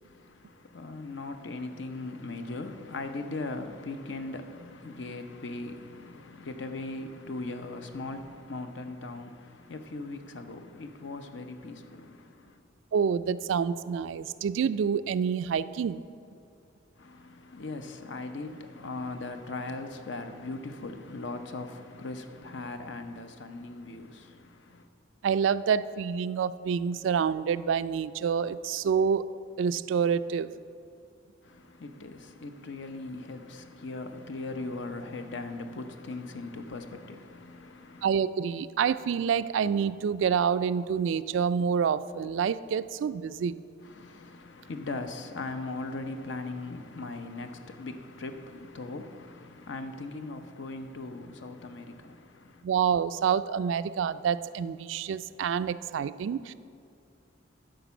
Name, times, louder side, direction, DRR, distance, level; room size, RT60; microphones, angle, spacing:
voice 1, 0.0-12.6 17.0-24.9 31.4-38.1 43.8-52.6, left 2 dB, 65° left, 0.7 m, -39 dB
voice 2, 12.9-16.0 25.2-29.2 29.6-30.5 38.0-43.6 52.6-56.5, right 7 dB, 75° right, 0.3 m, -27 dB
10.0 x 5.2 x 7.0 m
head